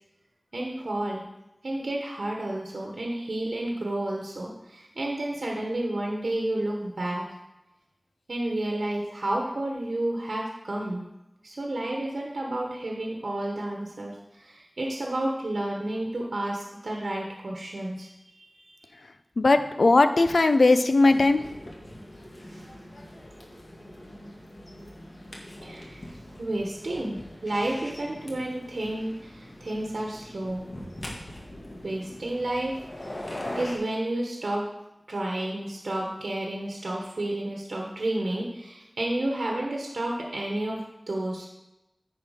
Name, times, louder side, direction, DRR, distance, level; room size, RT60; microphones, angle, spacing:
voice 1, 0.5-1.2 1.6-7.4 8.3-11.1 11.4-18.9 22.5-22.7 25.6-26.0 26.4-30.6 31.8-34.6 35.1-40.8 41.1-41.5, right 1 dB, 90° right, -1 dB, 1.1 m, -31 dB
voice 2, 19.4-21.4, left 2 dB, 85° left, 10 dB, 0.5 m, -19 dB
sound 1, 21.0-33.8, left 1 dB, 65° left, 1.8 m, -42 dB
9.4 x 5.7 x 5.0 m, 0.93 s
wide cardioid pair, 50°, 0 cm